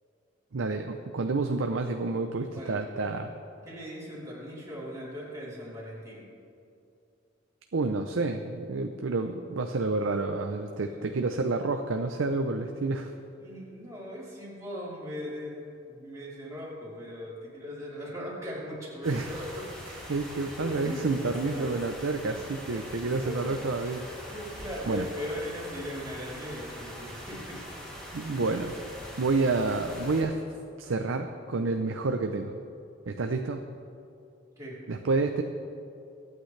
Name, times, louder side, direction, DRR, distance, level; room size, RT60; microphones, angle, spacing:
voice 1, 0.5-3.3 7.7-13.1 19.0-19.5 20.1-24.0 24.9-25.1 28.1-28.7 29.2-30.4 30.8-32.6 33.1-33.6 34.9-35.4, right 3 dB, 85° right, 5 dB, 0.6 m, -29 dB
voice 2, 3.7-6.3 13.4-19.9 20.6-21.0 21.3-21.8 22.3-22.6 23.2-23.6 24.3-27.6 28.1-28.2 34.6-34.8, equal, 15° right, -8 dB, 3.5 m, -39 dB
sound 1, 19.0-30.2, equal, 5° left, 2.6 m, -43 dB
22.5 x 9.0 x 3.3 m, 2.6 s
head